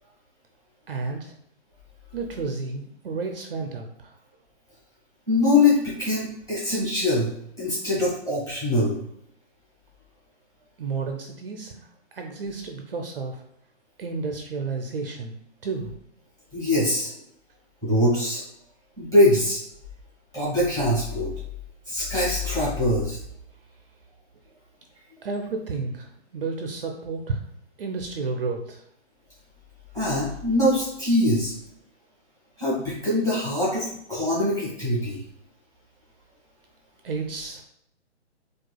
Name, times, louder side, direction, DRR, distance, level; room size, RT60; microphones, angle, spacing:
voice 1, 0.9-1.3 2.1-4.1 10.8-13.4 14.0-15.3 15.6-15.9 25.2-27.4 27.8-28.8 37.0-37.6, right 4 dB, 55° right, 3 dB, 0.5 m, -31 dB
voice 2, 5.3-7.3 7.6-9.0 16.5-17.1 17.8-18.4 19.0-19.6 20.3-21.3 21.9-23.2 29.9-31.5 32.6-35.2, left 1 dB, 10° left, -8 dB, 1.2 m, -23 dB
4.6 x 2.4 x 2.2 m, 0.73 s
hypercardioid pair, 160°, 35 cm